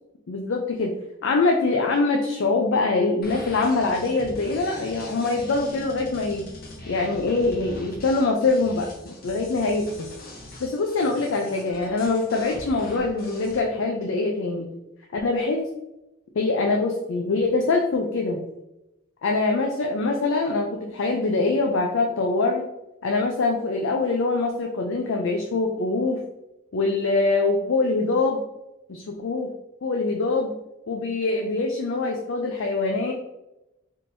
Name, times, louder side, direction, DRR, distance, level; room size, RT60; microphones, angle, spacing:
voice 1, 0.3-0.9 1.2-6.4 6.9-10.1 10.6-14.7 15.1-15.7 16.4-18.4 19.2-22.6 23.0-26.2 26.7-28.4 28.9-29.5 29.8-30.5 30.9-33.1, left 3 dB, 65° left, 1 dB, 0.4 m, -24 dB
sound 1, 3.2-13.6, left 1 dB, 45° left, 0.9 m, -41 dB
4.3 x 3.6 x 2.6 m, 0.92 s
head